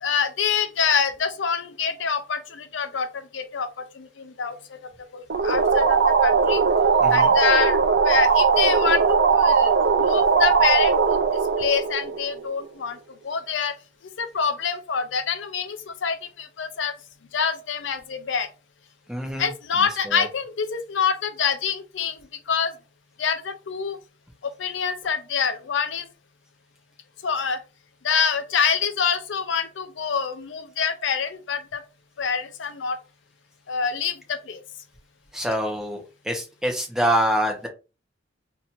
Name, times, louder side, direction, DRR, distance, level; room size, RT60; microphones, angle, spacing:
voice 1, 0.0-4.8 5.1-6.6 7.1-7.8 8.0-9.7 10.0-11.2 11.6-13.0 13.2-13.7 14.2-17.0 17.3-18.5 19.4-22.2 22.5-22.7 23.2-24.0 24.4-26.1 27.2-27.6 28.0-31.8 32.2-33.0 33.7-34.6, left 6 dB, 70° left, 0.5 m, -26 dB
sound 1, 5.3-12.7, right 5 dB, 65° right, 0.5 m, -19 dB
voice 2, 7.0-7.3 19.1-19.5 20.1-20.3 35.3-37.7, equal, 5° right, 0.8 m, -25 dB
2.8 x 2.5 x 4.2 m
head